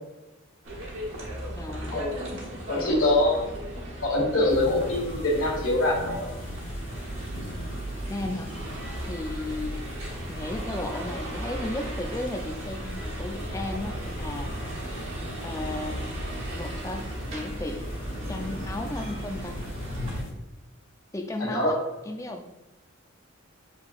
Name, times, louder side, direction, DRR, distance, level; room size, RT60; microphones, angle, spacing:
sound 1, 0.6-20.2, right 1 dB, 65° right, 1.0 m, -36 dB
voice 1, 1.5-2.4 2.7-3.0 8.1-8.5 9.1-9.8 10.3-14.5 15.4-16.0 16.5-17.8 18.3-19.6 21.1-21.8 22.1-22.5, left 2 dB, 15° left, 4 dB, 0.3 m, -34 dB
voice 2, 2.7-3.4 4.0-6.3 21.4-21.8, left 1 dB, 85° left, -2 dB, 1.4 m, -24 dB
sound 2, 4.5-20.3, left 1 dB, 70° left, 0.8 m, -41 dB
6.8 x 2.7 x 2.4 m, 1.1 s
head